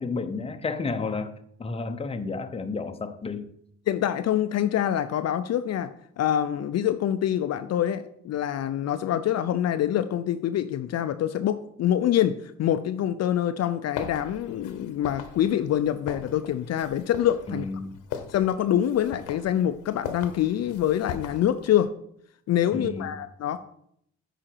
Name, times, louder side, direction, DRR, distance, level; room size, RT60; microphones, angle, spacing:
voice 1, 0.0-1.3 1.6-3.5 17.5-18.0 22.7-23.1, left 4 dB, 20° left, 0.7 m, -31 dB
voice 2, 3.9-17.7 18.3-21.9 22.5-23.6, left 11 dB, 60° left, 0.5 m, -25 dB
sound 1, 13.9-21.8, left 7 dB, 80° left, 0.9 m, -40 dB
8.7 x 5.0 x 4.5 m
cardioid pair, 90°, 30 cm